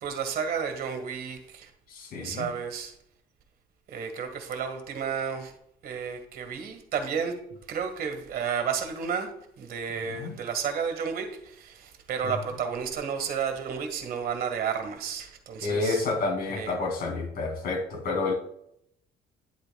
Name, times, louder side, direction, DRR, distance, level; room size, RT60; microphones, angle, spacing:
voice 1, 0.0-1.7 2.2-2.9 3.9-5.5 5.8-7.4 7.7-16.1 16.4-16.8, right 7 dB, 60° right, 6 dB, 1.7 m, -32 dB
voice 2, 1.9-2.5 10.2-10.3 15.6-18.3, left 3 dB, 60° left, 2 dB, 2.4 m, -29 dB
10.5 x 8.3 x 2.3 m, 0.75 s
cardioid pair, 110°, 17 cm